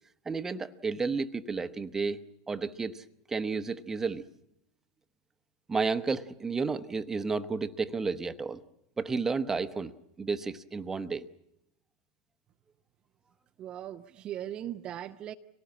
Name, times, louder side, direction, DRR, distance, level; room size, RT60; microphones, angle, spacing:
voice 1, 0.2-2.2 2.5-4.2 5.7-8.6 9.0-9.9 10.2-11.3, right 4 dB, 15° right, 10 dB, 1.0 m, -32 dB
voice 2, 13.6-15.3, right 11 dB, 40° right, 7 dB, 0.8 m, -39 dB
24.5 x 18.5 x 8.7 m, 0.82 s
hypercardioid pair, 90°, 3 cm